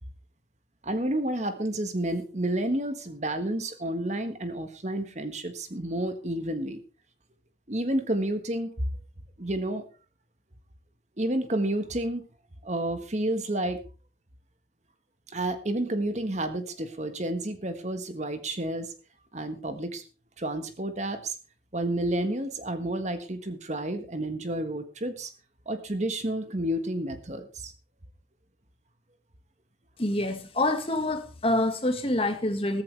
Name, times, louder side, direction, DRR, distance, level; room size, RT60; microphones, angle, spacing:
voice 1, 0.8-6.8 7.7-8.7 9.4-9.9 11.2-12.2 12.6-13.8 15.3-18.9 19.3-20.0 20.4-21.4 21.7-25.3 25.6-27.7, right 1 dB, 40° right, 1.5 m, -30 dB
voice 2, 30.0-32.8, left 1 dB, 30° left, 1.9 m, -26 dB
15.0 x 14.5 x 3.4 m
head